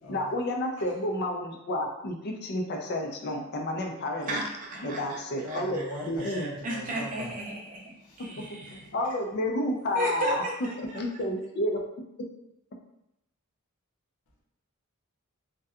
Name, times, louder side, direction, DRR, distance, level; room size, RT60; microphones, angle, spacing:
voice 1, 0.1-4.4 4.8-6.5 8.9-10.4 10.8-11.8, left 1 dB, 45° left, 2 dB, 0.4 m, -30 dB
voice 2, 4.3-5.2 5.5-5.8 6.2-8.9 9.4-9.6 9.9-11.0, right 1 dB, 35° right, -2 dB, 0.5 m, -35 dB
voice 3, 5.4-7.3 8.0-8.4 8.7-9.2, left 1 dB, 85° left, -3 dB, 0.7 m, -40 dB
2.6 x 2.2 x 2.3 m, 0.87 s
head